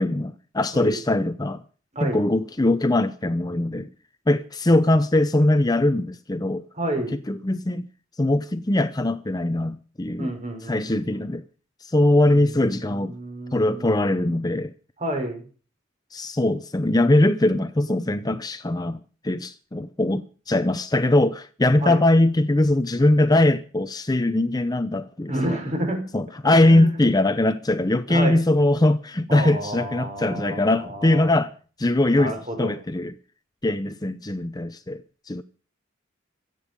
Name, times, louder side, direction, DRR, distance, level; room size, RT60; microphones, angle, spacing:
voice 1, 0.0-1.6 2.0-3.9 4.3-6.6 7.1-7.9 8.2-10.3 10.7-11.4 11.8-13.1 13.5-14.7 16.1-25.6 26.1-31.5 31.8-33.2 33.6-35.0 35.3-35.4, left 1 dB, 20° left, 0.7 m, -21 dB
voice 2, 1.9-2.3 6.7-7.2 10.2-11.3 12.3-13.9 15.0-15.4 21.8-22.0 25.3-26.1 26.4-26.9 28.1-28.4 29.3-31.4 32.2-32.7, right 1 dB, 35° right, 5.4 m, -30 dB
25.5 x 9.2 x 5.3 m
head